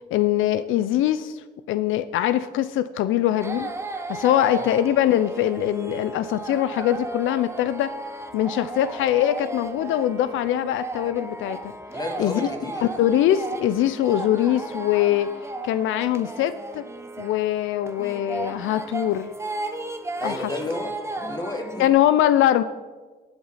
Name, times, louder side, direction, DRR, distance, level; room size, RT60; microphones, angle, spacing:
voice 1, 0.1-3.7 4.1-7.9 8.3-11.6 12.2-12.5 13.0-15.3 15.6-16.8 17.2-19.3 20.2-20.5 21.8-22.6, left 12 dB, 85° left, 13 dB, 0.5 m, -22 dB
sound 1, 3.3-21.9, right 2 dB, 15° right, 0.9 m, -35 dB
voice 2, 11.9-12.9 20.2-21.9, left 2 dB, 20° left, 5 dB, 1.8 m, -32 dB
15.0 x 7.9 x 4.2 m, 1.3 s
cardioid pair, 90°, 20 cm